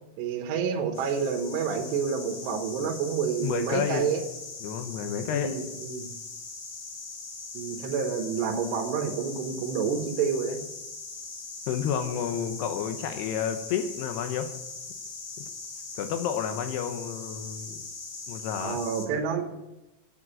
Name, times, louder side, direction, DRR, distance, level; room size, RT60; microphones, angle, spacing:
voice 1, 0.2-4.2 5.3-6.1 7.5-10.6 18.6-19.5, right 6 dB, 75° right, 3 dB, 3.1 m, -29 dB
sound 1, 0.9-19.1, left 4 dB, 45° left, 2.8 m, -41 dB
voice 2, 3.4-4.1 4.6-5.5 11.7-14.5 15.4-15.5 16.0-17.8 18.3-18.8, left 8 dB, 75° left, 7 dB, 2.8 m, -30 dB
9.1 x 8.6 x 8.8 m, 0.98 s
omnidirectional pair, 5.2 m